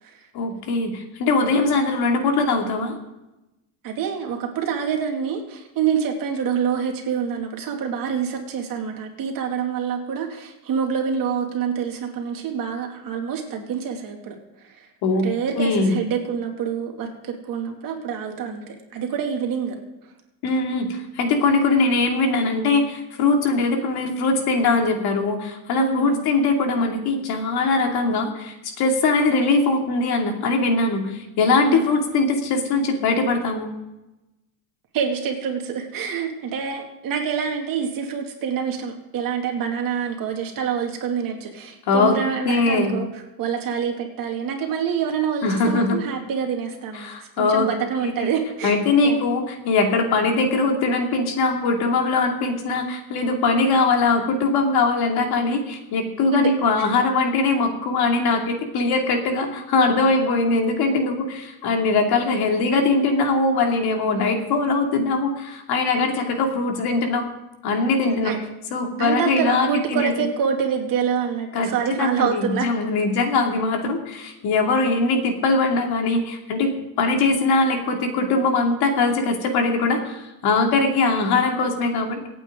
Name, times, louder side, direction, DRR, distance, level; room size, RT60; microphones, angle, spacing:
voice 1, 0.3-3.0 15.0-15.3 15.6-16.0 20.4-33.7 41.9-42.1 42.4-43.0 45.4-46.0 47.0-47.7 48.0-48.3 48.6-67.2 67.6-68.4 68.7-70.1 71.5-71.7 72.0-82.2, left 3 dB, 55° left, 3 dB, 2.7 m, -21 dB
voice 2, 3.8-14.9 15.2-19.8 25.8-26.2 31.6-31.9 34.9-48.8 49.0-49.2 56.3-56.5 60.2-60.3 64.1-64.6 68.0-68.4 69.0-72.7, right 7 dB, 45° right, 2 dB, 2.6 m, -26 dB
25.5 x 9.0 x 3.8 m, 0.97 s
cardioid pair, 145°, 45 cm